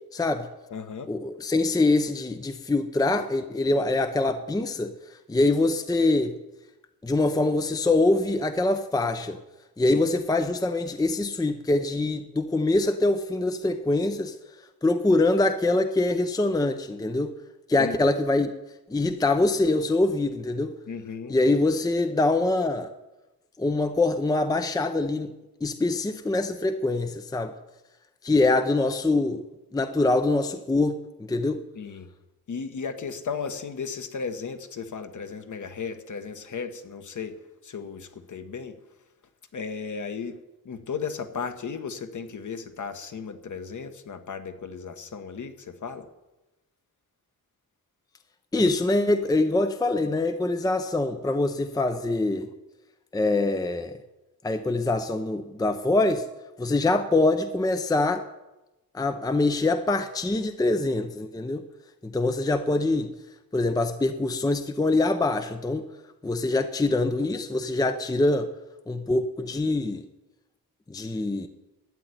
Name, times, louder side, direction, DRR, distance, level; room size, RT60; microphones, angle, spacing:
voice 1, 0.1-0.5 1.1-4.9 5.3-6.4 7.0-9.4 9.8-14.3 14.8-17.3 17.7-18.5 18.9-20.7 21.3-22.9 23.6-25.3 25.6-27.5 28.2-29.4 29.7-31.6 48.5-52.5 53.1-53.9 54.4-56.3 56.6-58.2 58.9-61.6 62.0-63.1 63.5-65.9 66.2-68.5 68.9-70.0 70.9-71.5, left 2 dB, 10° left, 9 dB, 0.6 m, -24 dB
voice 2, 0.7-1.1 9.9-10.0 17.8-18.0 20.9-21.3 31.7-32.1 32.5-37.4 37.6-38.7 39.5-40.4 40.6-46.1, left 5 dB, 50° left, 8 dB, 1.4 m, -35 dB
12.5 x 9.0 x 9.8 m, 1.0 s
wide cardioid pair, 180°, 37 cm